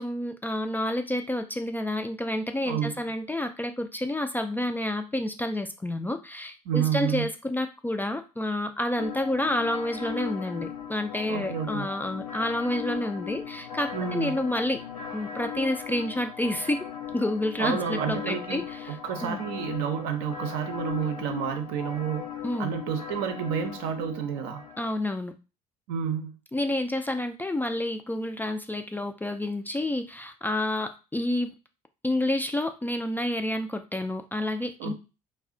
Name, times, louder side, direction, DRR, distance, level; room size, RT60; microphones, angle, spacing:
voice 1, 0.0-14.8 15.1-16.9 17.1-19.0 19.2-19.4 22.4-22.7 24.8-25.3 26.5-31.5 32.0-34.9, left 1 dB, 10° left, 6 dB, 0.3 m, -29 dB
voice 2, 2.7-3.0 6.7-7.3 11.3-11.9 13.9-14.4 17.6-22.3 22.6-24.6 25.9-26.4 34.8-34.9, right 8 dB, 65° right, 6 dB, 0.6 m, -30 dB
sound 1, 9.0-24.9, left 8 dB, 80° left, 0.5 m, -38 dB
2.3 x 2.1 x 3.7 m, 0.31 s
figure-of-eight pair, 55°, 19 cm